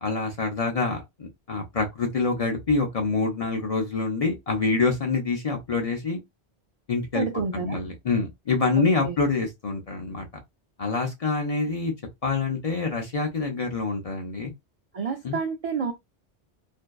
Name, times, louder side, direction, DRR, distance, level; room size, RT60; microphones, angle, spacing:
voice 1, 0.0-6.2 6.9-7.2 7.6-10.3 10.8-11.9 12.2-14.5 15.2-15.4, left 4 dB, 40° left, 0.6 m, -26 dB
voice 2, 7.1-7.8 8.8-9.2 14.9-15.9, right 5 dB, 60° right, 0.3 m, -29 dB
2.6 x 2.2 x 2.2 m
omnidirectional pair, 1.1 m